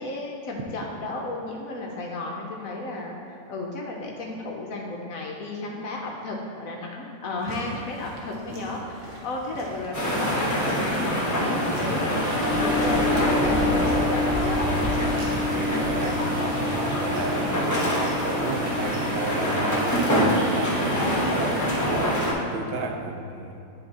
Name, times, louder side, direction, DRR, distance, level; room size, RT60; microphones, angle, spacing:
voice 1, 0.0-14.6 20.9-21.8, left 2 dB, 70° left, -1 dB, 0.8 m, -33 dB
sound 1, 7.4-19.3, equal, 50° right, 1.3 m, -42 dB
sound 2, 9.9-22.3, equal, 15° left, 0.6 m, -25 dB
sound 3, 12.4-20.1, left 2 dB, 20° right, 0.7 m, -29 dB
voice 2, 15.5-23.6, right 4 dB, 80° right, 4 dB, 1.4 m, -33 dB
9.6 x 3.5 x 4.1 m, 2.7 s
omnidirectional pair, 2.1 m